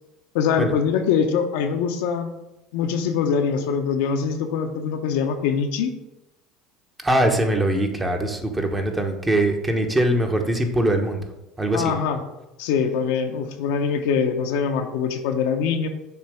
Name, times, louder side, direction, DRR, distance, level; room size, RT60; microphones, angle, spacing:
voice 1, 0.3-2.3 2.7-5.9 11.7-12.2 12.6-15.9, left 6 dB, 80° left, 5 dB, 0.6 m, -23 dB
voice 2, 7.0-11.2 11.6-11.9, right 1 dB, 20° right, 4 dB, 1.0 m, -22 dB
6.9 x 3.0 x 4.8 m, 0.96 s
hypercardioid pair, 85°, 0 cm